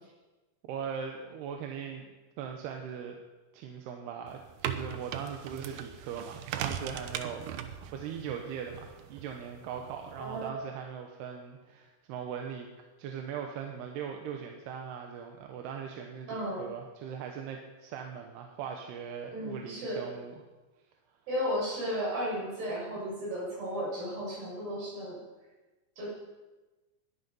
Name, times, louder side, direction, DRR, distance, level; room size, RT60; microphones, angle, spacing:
voice 1, 0.6-2.1 2.4-3.2 3.5-12.7 13.0-20.4, right 7 dB, 70° right, 3 dB, 2.9 m, -40 dB
sound 1, 4.3-10.5, right 9 dB, 90° right, 1.9 m, -40 dB
voice 2, 10.2-10.5 16.3-16.7 19.3-20.0 21.3-25.2 26.0-26.1, equal, 50° right, -5 dB, 8.6 m, -34 dB
20.0 x 11.5 x 5.5 m, 1.2 s
omnidirectional pair, 5.2 m